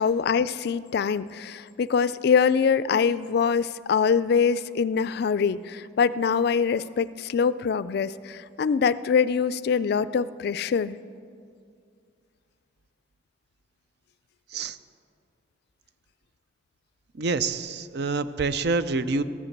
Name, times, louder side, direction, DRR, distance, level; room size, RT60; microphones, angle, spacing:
voice 1, 0.0-11.0, left 6 dB, 55° left, 16 dB, 0.3 m, -24 dB
voice 2, 17.2-19.2, right 3 dB, 60° right, 13 dB, 0.5 m, -27 dB
14.5 x 8.2 x 7.2 m, 2.3 s
head